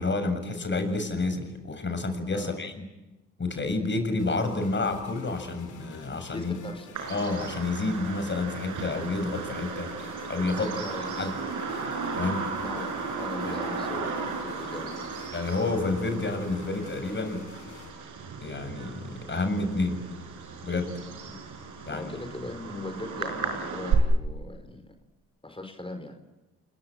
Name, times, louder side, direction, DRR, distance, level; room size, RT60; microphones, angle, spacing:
voice 1, 0.0-2.8 3.4-6.5 7.1-9.9 10.3-10.7 11.2-11.3 12.2-12.5 15.3-17.5 18.4-20.1 20.6-20.9 21.9-22.1, left 3 dB, 35° left, 8 dB, 7.1 m, -29 dB
sound 1, 4.2-17.9, left 5 dB, 65° left, 4.9 m, -49 dB
voice 2, 6.3-7.0 10.5-11.5 12.6-15.1 21.2-21.5 21.9-24.9 25.4-26.2, left 2 dB, 15° left, 8 dB, 4.4 m, -39 dB
Bird vocalization bird call bird song, 6.9-23.9, right 5 dB, 70° right, 5.6 m, -35 dB
29.0 x 21.0 x 9.1 m, 1.0 s
hypercardioid pair, 55°, 32 cm